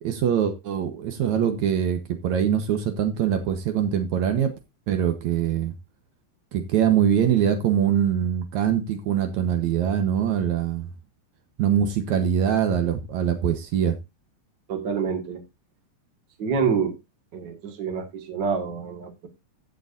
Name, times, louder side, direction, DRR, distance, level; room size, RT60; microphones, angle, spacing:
voice 1, 0.0-4.5 4.9-5.7 6.5-10.9 11.6-14.0, right 9 dB, 70° right, 2.4 m, -23 dB
voice 2, 14.7-15.4 16.4-17.0 17.3-19.3, right 6 dB, 40° right, 2.1 m, -27 dB
15.5 x 6.9 x 2.6 m
omnidirectional pair, 3.4 m